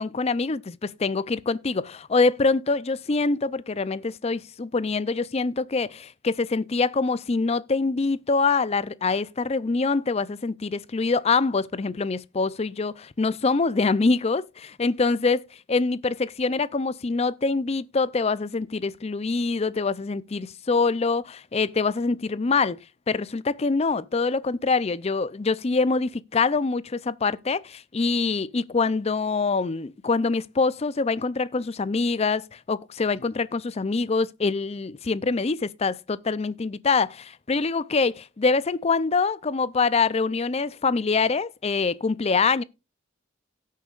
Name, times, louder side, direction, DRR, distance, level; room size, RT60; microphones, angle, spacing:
voice 1, 0.0-22.8 23.1-42.6, left 4 dB, 30° left, 0.5 m, -25 dB
17.5 x 6.6 x 2.4 m
head